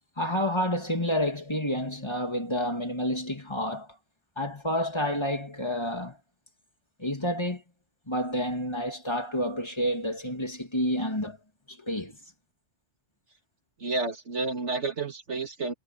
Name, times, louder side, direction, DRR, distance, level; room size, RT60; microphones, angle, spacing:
voice 1, 0.2-3.9 4.4-6.2 7.0-7.6 8.1-11.4 11.7-12.2, equal, 25° left, 3.1 m, -29 dB
voice 2, 13.8-15.7, right 3 dB, 90° right, 3.0 m, -30 dB
omnidirectional pair, 1.1 m